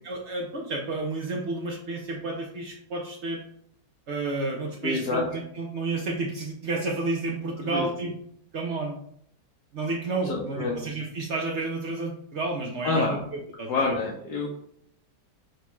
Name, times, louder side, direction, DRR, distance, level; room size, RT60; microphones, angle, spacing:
voice 1, 0.0-3.4 4.1-8.1 8.5-9.0 9.7-13.2 13.6-13.9, right 3 dB, 75° right, 0 dB, 0.6 m, -31 dB
voice 2, 4.8-5.2 7.6-7.9 10.2-10.8 12.8-13.2 13.7-14.5, left 3 dB, 70° left, -3 dB, 1.2 m, -27 dB
6.0 x 2.2 x 3.0 m, 0.66 s
omnidirectional pair, 1.9 m